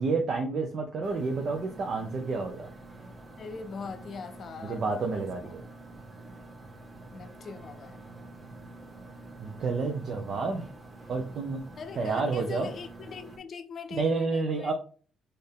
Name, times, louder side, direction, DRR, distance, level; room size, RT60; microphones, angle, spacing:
voice 1, 0.0-2.7 4.6-5.6 9.4-10.7 11.1-11.6 12.0-12.7 13.9-14.7, right 4 dB, 55° right, 0.6 m, -29 dB
sound 1, 1.0-13.4, right 2 dB, 20° right, 1.3 m, -47 dB
voice 2, 3.4-5.3 7.1-8.0 11.8-14.7, left 5 dB, 55° left, 0.5 m, -41 dB
4.3 x 2.6 x 3.5 m
cardioid pair, 90°, 0 cm